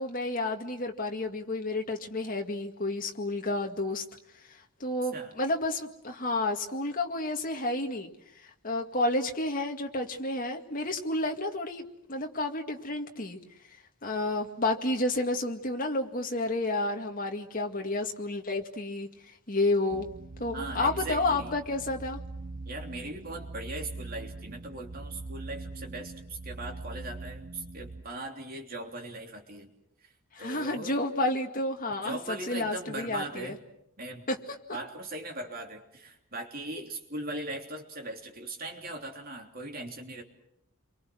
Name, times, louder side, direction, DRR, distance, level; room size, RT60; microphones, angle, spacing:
voice 1, 0.0-4.0 4.5-8.1 8.4-13.4 14.0-19.1 19.5-20.1 20.4-22.2 30.3-33.6 34.3-34.4, left 2 dB, 40° left, 3 dB, 2.1 m, -30 dB
sound 1, 19.9-28.0, right 2 dB, 60° right, 1.3 m, -42 dB
voice 2, 20.5-21.5 22.6-29.7 30.0-30.1 30.4-31.0 32.0-33.6 34.0-34.3 34.7-40.2, right 2 dB, 45° right, 2 dB, 3.3 m, -39 dB
29.0 x 24.0 x 6.3 m, 0.79 s
head